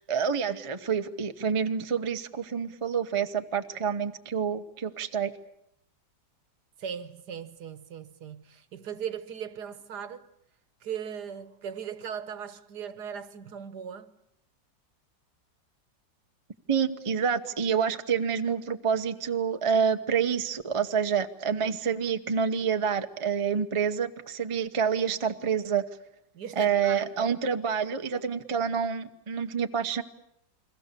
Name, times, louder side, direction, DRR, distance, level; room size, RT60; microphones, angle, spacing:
voice 1, 0.1-5.3 16.7-25.8 26.6-30.0, right 7 dB, 30° right, 0.5 m, -28 dB
voice 2, 6.8-10.2 10.8-14.1 26.3-27.0, right 8 dB, 65° right, 1.6 m, -38 dB
29.5 x 21.5 x 6.7 m
omnidirectional pair, 2.0 m